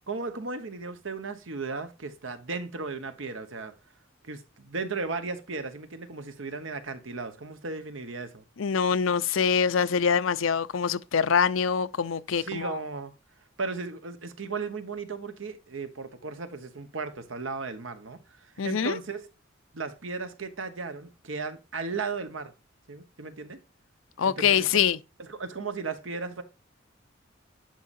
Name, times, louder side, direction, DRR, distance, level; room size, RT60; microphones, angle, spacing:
voice 1, 0.1-3.7 4.2-8.4 12.4-13.1 13.6-19.3 19.7-22.5 22.9-23.6 24.2-24.9 25.2-26.4, right 4 dB, 75° right, 1.1 m, -36 dB
voice 2, 8.6-12.8 18.6-19.0 24.2-25.0, left 7 dB, 80° left, 0.5 m, -24 dB
10.5 x 5.5 x 2.6 m
head